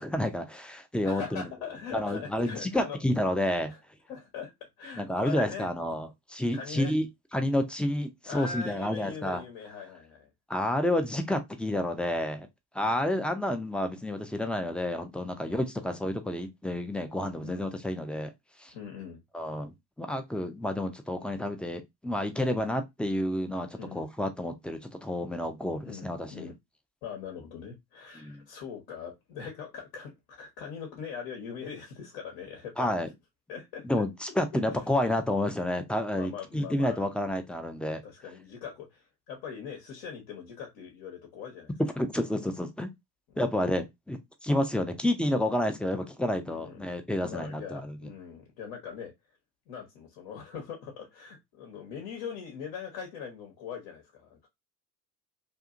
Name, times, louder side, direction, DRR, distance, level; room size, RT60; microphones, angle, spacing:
voice 1, 0.0-1.4 1.9-3.7 5.0-7.1 7.3-9.4 10.5-12.5 12.7-18.3 18.6-18.7 19.3-23.7 23.9-26.5 28.2-28.4 32.8-33.1 33.8-38.0 42.0-42.9 43.4-47.8, left 1 dB, ahead, 0.4 m, -30 dB
voice 2, 1.0-3.0 3.7-3.8 4.1-5.7 6.5-6.9 8.2-10.3 12.8-13.0 15.4-15.6 17.4-17.6 18.7-19.2 23.8-24.1 25.8-26.6 27.0-32.9 33.5-33.9 34.5-34.8 36.2-37.1 38.0-41.7 43.3-43.7 46.4-46.9 47.2-49.1 49.7-54.5, left 6 dB, 65° left, 1.1 m, -41 dB
2.7 x 2.5 x 2.4 m
hypercardioid pair, 60°, 48 cm